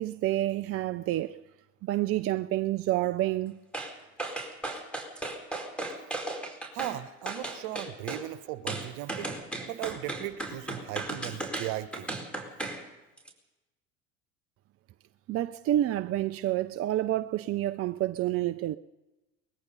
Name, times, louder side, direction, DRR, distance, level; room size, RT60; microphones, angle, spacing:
voice 1, 0.0-1.4 1.8-3.6 15.3-18.8, right 14 dB, 35° right, 0.6 m, -28 dB
sound 1, 3.7-3.9 4.2-7.0 7.3-8.2 8.7-12.8 13.2-13.3, right 2 dB, 5° left, 4.6 m, -35 dB
voice 2, 6.7-12.1, right 14 dB, 60° right, 1.4 m, -37 dB
23.5 x 21.0 x 5.5 m
hypercardioid pair, 75°, 40 cm